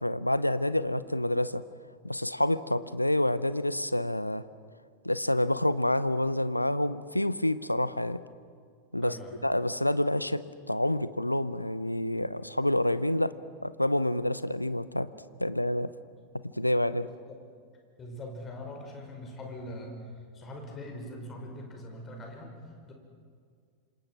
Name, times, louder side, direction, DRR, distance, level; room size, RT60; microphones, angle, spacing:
voice 1, 0.0-1.6 2.0-4.4 5.0-8.2 8.9-10.4 10.7-13.3 13.6-15.1 15.4-15.9 16.5-17.1, left 1 dB, 85° left, 16 dB, 0.7 m, -28 dB
voice 2, 9.0-9.4 16.1-16.2 17.0-17.4 18.0-20.0 20.3-22.6 22.9-23.0, left 1 dB, 25° left, 2 dB, 5.7 m, -42 dB
28.0 x 27.0 x 6.1 m, 2.1 s
figure-of-eight pair, 90°, 0 cm